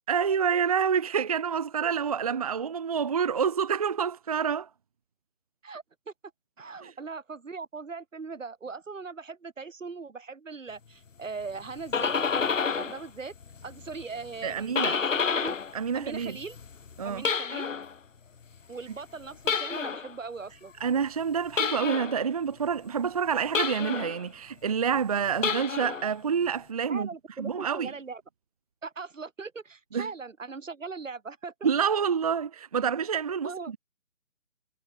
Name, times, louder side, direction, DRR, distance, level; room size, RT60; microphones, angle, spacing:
voice 1, 0.1-4.7 6.8-6.9 14.4-15.0 15.7-16.4 17.0-17.2 20.8-27.1 27.4-27.9 29.9-30.1 31.6-33.8, right 7 dB, 25° right, 0.9 m, -28 dB
voice 2, 5.6-6.1 6.6-13.3 13.6-15.5 15.9-16.6 17.0-17.7 18.7-20.7 26.9-28.2 28.8-31.7 33.4-33.7, right 4 dB, 65° right, 2.8 m, -40 dB
sound 1, 11.6-13.0 13.4-15.8 16.1-17.9 19.4-20.1 21.5-22.2 23.5-24.2 25.3-26.1, left 6 dB, 65° left, 1.1 m, -29 dB
figure-of-eight pair, 150°, 41 cm